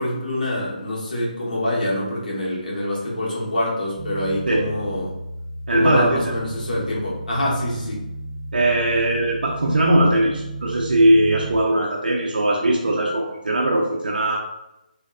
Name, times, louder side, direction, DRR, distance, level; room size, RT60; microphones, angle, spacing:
voice 1, 0.0-5.1 5.7-8.0, left 1 dB, 65° left, -5 dB, 1.0 m, -25 dB
sound 1, 4.0-11.5, right 1 dB, 5° right, 0.3 m, -34 dB
voice 2, 5.7-6.2 8.5-14.4, right 1 dB, 85° right, -2 dB, 0.4 m, -19 dB
2.8 x 2.1 x 2.3 m, 0.91 s
hypercardioid pair, 175°, 5 cm